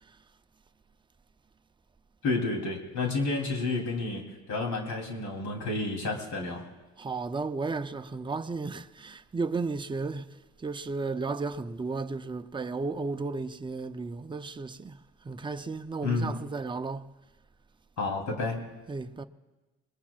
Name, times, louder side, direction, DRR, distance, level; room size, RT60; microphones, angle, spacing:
voice 1, 2.2-4.2 4.5-6.6 16.0-16.3 18.0-18.6, left 3 dB, 75° left, 3.3 m, -30 dB
voice 2, 7.0-15.0 15.2-17.1 18.9-19.2, right 3 dB, 15° right, 0.5 m, -34 dB
25.5 x 20.5 x 2.4 m
cardioid pair, 90°, 30 cm